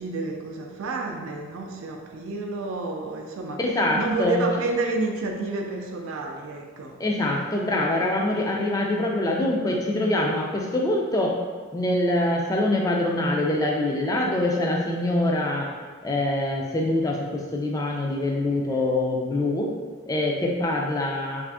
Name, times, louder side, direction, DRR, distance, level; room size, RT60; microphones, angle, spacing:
voice 1, 0.0-3.6 4.0-7.0, right 3 dB, 70° right, 2 dB, 0.3 m, -29 dB
voice 2, 3.6-4.4 7.0-11.3 11.7-15.7 16.0-19.7 20.1-21.4, left 1 dB, 15° left, 0 dB, 0.3 m, -24 dB
3.2 x 2.5 x 3.4 m, 1.5 s
head